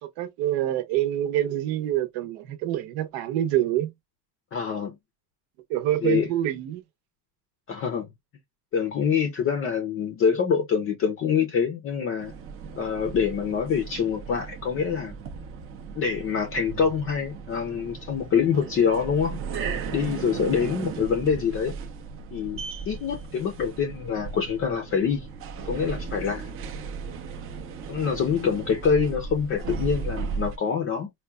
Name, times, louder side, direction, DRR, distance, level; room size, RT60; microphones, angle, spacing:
voice 1, 0.0-3.9 5.7-6.8, right 12 dB, 75° right, 0.9 m, -26 dB
voice 2, 4.5-5.0 6.0-6.3 7.7-8.1 8.7-12.3 12.7-15.2 15.9-19.4 19.9-21.8 22.3-25.3 25.6-26.5 27.9-31.1, left 6 dB, 30° left, 0.5 m, -25 dB
sound 1, 12.2-30.6, right 5 dB, 35° right, 0.5 m, -36 dB
4.5 x 2.2 x 2.3 m
cardioid pair, 160°, 41 cm